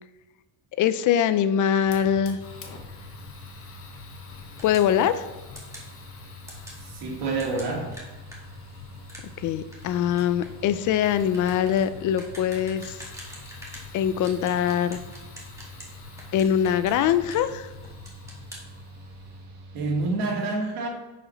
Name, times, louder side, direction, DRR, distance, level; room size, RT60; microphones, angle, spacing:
voice 1, 0.8-2.4 4.6-5.3 9.4-13.0 13.9-15.0 16.3-17.7, left 9 dB, 50° left, 12 dB, 0.5 m, -23 dB
Fire, 1.8-19.5, left 5 dB, 35° left, 1.0 m, -46 dB
Mechanical fan, 2.0-20.2, equal, 45° right, 1.7 m, -46 dB
sound 1, 4.6-4.9 5.6-5.9 6.5-6.8 7.4-13.9 14.2-15.9 16.2-17.6 17.8-18.6, right 1 dB, 5° right, 1.9 m, -45 dB
voice 2, 6.9-8.0 19.7-20.9, right 3 dB, 80° right, 0 dB, 2.2 m, -27 dB
9.7 x 5.0 x 3.9 m, 1.2 s
cardioid pair, 155°, 40 cm